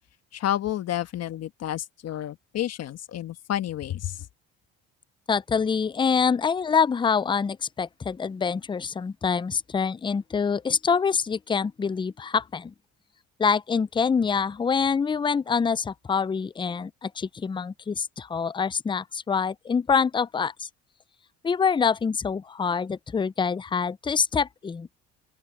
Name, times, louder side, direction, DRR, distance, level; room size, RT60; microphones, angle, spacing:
voice 1, 0.3-4.3, left 12 dB, 55° left, 1.5 m, -30 dB
voice 2, 5.3-12.7 13.4-20.7 21.4-24.9, left 6 dB, 15° left, 0.5 m, -25 dB
open air
supercardioid pair, 80°, 30 cm